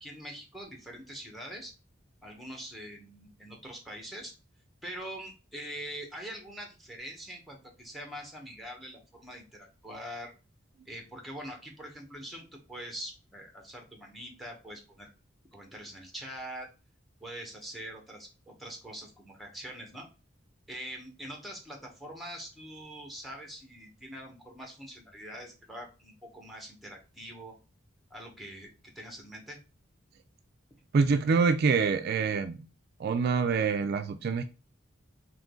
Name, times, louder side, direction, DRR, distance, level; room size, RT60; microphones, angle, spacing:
voice 1, 0.0-1.7 2.2-4.3 4.8-10.3 10.9-15.1 15.5-16.7 17.2-20.1 20.7-27.5 28.1-29.6, equal, ahead, 1.1 m, -43 dB
voice 2, 30.9-32.6 33.0-34.5, right 5 dB, 55° right, 0.3 m, -26 dB
3.7 x 3.0 x 3.6 m
head